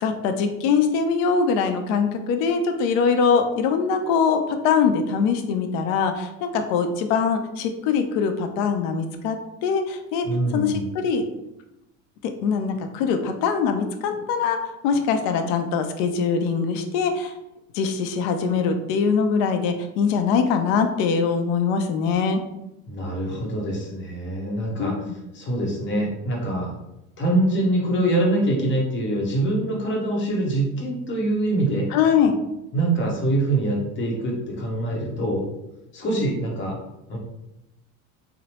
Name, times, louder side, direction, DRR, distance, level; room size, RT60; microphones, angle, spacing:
voice 1, 0.0-10.3 10.5-11.2 12.4-17.3 17.7-22.4 24.8-25.1 31.9-32.4, left 6 dB, 65° left, 6 dB, 0.5 m, -22 dB
voice 2, 10.2-10.9 22.9-26.7 27.2-31.9 32.7-35.5 35.9-36.8 37.1-37.2, right 1 dB, 30° left, -1 dB, 0.8 m, -24 dB
2.9 x 2.0 x 2.9 m, 0.88 s
supercardioid pair, 115°, 40 cm